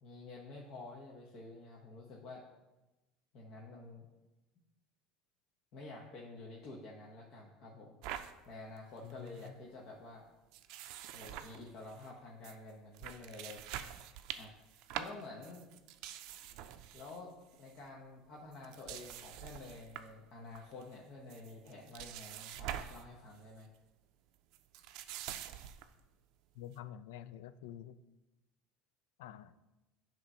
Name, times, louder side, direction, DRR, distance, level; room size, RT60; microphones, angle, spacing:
voice 1, 0.0-2.4 3.3-4.1 5.7-8.0 8.5-10.2 11.1-13.6 14.3-14.5 15.0-15.7 16.9-17.3 17.6-23.7, left 2 dB, 55° left, -3 dB, 1.1 m, -50 dB
sound 1, 8.0-8.3 8.8-8.9 9.1-9.5 10.5-12.1 12.4-12.6 12.9-17.2 17.5-17.8 18.5-20.2 20.5-21.0 21.3-23.1 23.4-23.6 24.5-25.9, right 11 dB, 70° right, 0.4 m, -45 dB
voice 2, 9.0-9.5 26.6-28.0 29.2-29.6, left 10 dB, 85° left, 14 dB, 0.3 m, -48 dB
8.5 x 3.0 x 5.5 m, 1.0 s
supercardioid pair, 100°, 0 cm